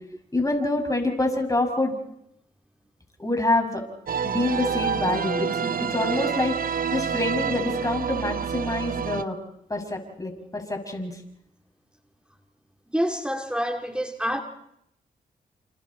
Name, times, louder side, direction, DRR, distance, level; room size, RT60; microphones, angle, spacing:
voice 1, 0.3-1.9 3.2-3.8 4.2-9.4 9.7-11.1, left 2 dB, 20° left, 6.4 m, -26 dB
sound 1, 4.1-9.2, right 7 dB, 55° right, 0.9 m, -28 dB
voice 2, 12.9-14.4, equal, 5° right, 2.2 m, -27 dB
28.0 x 28.0 x 4.3 m
supercardioid pair, 50°, 17 cm